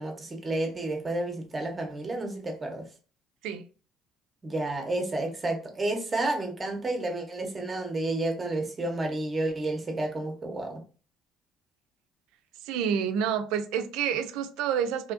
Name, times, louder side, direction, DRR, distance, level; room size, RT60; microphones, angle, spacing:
voice 1, 0.0-2.9 4.4-10.8, right 2 dB, 25° right, 0.7 m, -31 dB
voice 2, 12.7-15.1, right 8 dB, 80° right, 0.3 m, -28 dB
2.7 x 2.6 x 2.4 m
cardioid pair, 105°, 0 cm